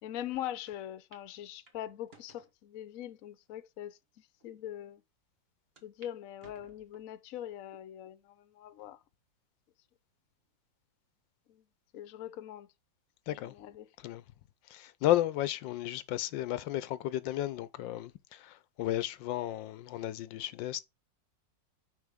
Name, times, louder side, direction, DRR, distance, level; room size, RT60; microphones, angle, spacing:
voice 1, 0.0-5.0 5.8-9.0 11.5-11.6 11.9-12.7 13.3-13.9, left 12 dB, 60° left, 0.9 m, -42 dB
sound 1, 0.7-0.8 1.1-1.3 1.7-2.5 3.2-3.3 4.0-4.1 4.4-4.5 5.8-6.1 6.4-7.2 7.7-8.2 8.7-8.8 9.9-10.4, right 3 dB, 35° right, 1.4 m, -60 dB
voice 2, 14.7-20.9, left 13 dB, 90° left, 1.4 m, -33 dB
6.3 x 5.4 x 3.6 m
omnidirectional pair, 2.0 m